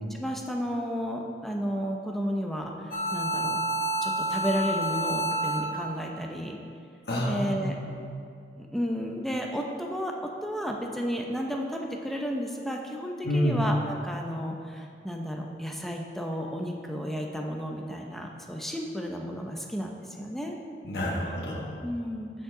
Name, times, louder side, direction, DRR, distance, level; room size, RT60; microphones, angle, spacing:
voice 1, 0.1-3.6 4.0-6.6 7.2-7.8 8.6-10.1 10.4-20.6 21.8-22.4, equal, ahead, 0 dB, 0.6 m, -32 dB
sound 1, 2.9-5.9, right 1 dB, 50° left, 1.4 m, -29 dB
voice 2, 7.1-8.1 13.2-13.7 20.8-21.8, equal, 65° left, -3 dB, 1.2 m, -29 dB
14.0 x 5.4 x 3.8 m, 2.3 s
head